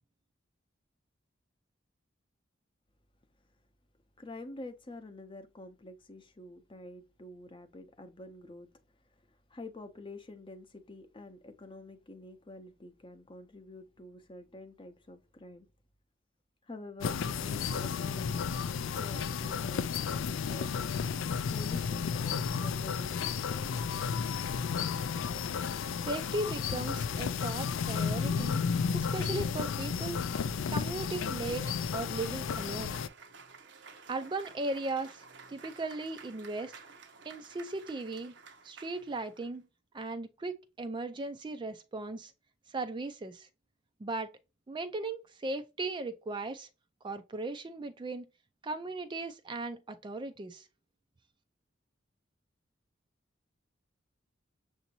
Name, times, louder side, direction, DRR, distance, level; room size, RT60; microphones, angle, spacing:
voice 1, 4.2-8.7 9.1-15.7 16.6-18.4 19.0-20.9 21.5-23.7, left 2 dB, 25° left, 0.7 m, -48 dB
sound 1, 17.0-33.1, left 6 dB, 85° left, 0.4 m, -33 dB
voice 2, 25.9-28.6 28.9-30.2 30.7-33.0 34.1-36.7 37.3-38.3 38.6-39.7 39.9-42.3 42.7-43.5 44.0-44.3 44.7-46.7 47.0-48.3 48.6-50.7, right 2 dB, 25° right, 0.4 m, -37 dB
Cheering / Applause, 31.9-39.5, right 5 dB, 65° right, 0.7 m, -53 dB
6.9 x 2.6 x 2.8 m
head